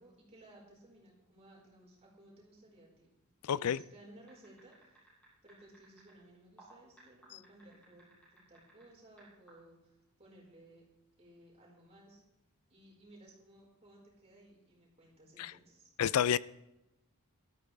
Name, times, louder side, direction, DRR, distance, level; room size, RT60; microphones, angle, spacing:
voice 1, 0.0-3.1 3.5-5.0 5.4-10.8 11.2-12.2 12.7-15.9, right 1 dB, 30° right, 4.9 m, -59 dB
voice 2, 3.5-3.8 15.4-15.5 16.0-16.4, left 8 dB, 80° left, 0.4 m, -29 dB
sound 1, 4.3-6.1 6.6-8.8 9.2-9.5, right 2 dB, 5° left, 6.7 m, -59 dB
17.5 x 13.5 x 3.5 m
head